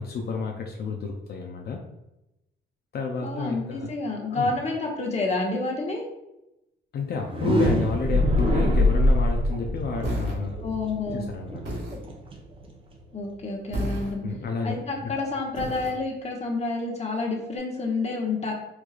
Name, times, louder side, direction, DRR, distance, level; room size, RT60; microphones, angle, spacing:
voice 1, 0.0-1.8 2.9-3.9 4.3-4.5 6.9-10.6 11.1-11.6 14.2-15.1, left 4 dB, 55° left, 1 dB, 0.5 m, -30 dB
voice 2, 3.2-6.0 10.6-11.3 13.1-14.2 14.6-18.5, left 3 dB, 35° left, 0 dB, 0.9 m, -29 dB
sound 1, 7.2-13.0, left 1 dB, 25° right, 0.7 m, -24 dB
sound 2, 10.0-10.4 11.6-12.0 13.7-14.1 15.5-15.9, right 1 dB, 70° right, 1.5 m, -30 dB
4.5 x 2.3 x 2.4 m, 0.92 s
cardioid pair, 90°, 20 cm